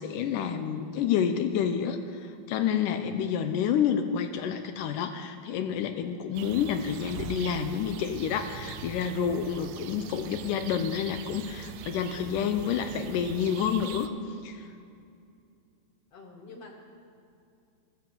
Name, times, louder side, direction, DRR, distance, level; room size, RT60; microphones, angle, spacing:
voice 1, 0.0-14.1 14.4-14.7, left 8 dB, 80° left, 8 dB, 2.1 m, -29 dB
sound 1, 6.3-14.1, right 8 dB, 90° right, 2.4 m, -42 dB
voice 2, 16.1-16.8, left 3 dB, 55° left, 1 dB, 2.0 m, -47 dB
14.5 x 14.0 x 7.1 m, 2.5 s
omnidirectional pair, 4.2 m